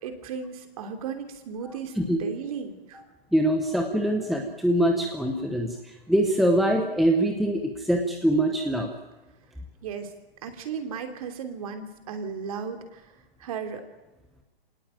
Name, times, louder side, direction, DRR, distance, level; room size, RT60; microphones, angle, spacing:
voice 1, 0.0-3.0 9.8-10.1 10.4-13.0 13.4-13.8, right 6 dB, 35° right, 7 dB, 3.1 m, -35 dB
voice 2, 3.3-5.7 6.1-8.9, right 1 dB, ahead, 3 dB, 0.8 m, -23 dB
26.0 x 18.0 x 9.0 m, 1.1 s
hypercardioid pair, 160°, 31 cm